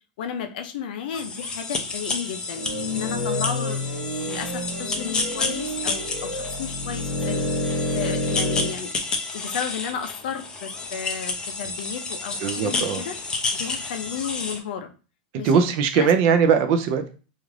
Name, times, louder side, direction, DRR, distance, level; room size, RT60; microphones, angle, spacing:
voice 1, 0.2-2.6 2.9-7.6 7.9-8.9 9.3-13.2 13.6-14.9 15.3-15.6 15.9-16.1, left 8 dB, 70° left, 6 dB, 0.4 m, -33 dB
sound 1, 1.1-14.6, left 3 dB, 15° left, 0.4 m, -30 dB
sound 2, 2.5-8.7, left 1 dB, 40° left, 1.0 m, -29 dB
voice 2, 12.4-13.0 15.4-17.1, right 6 dB, 45° right, 7 dB, 0.4 m, -21 dB
2.4 x 2.4 x 3.1 m, 0.35 s
supercardioid pair, 155°, 5 cm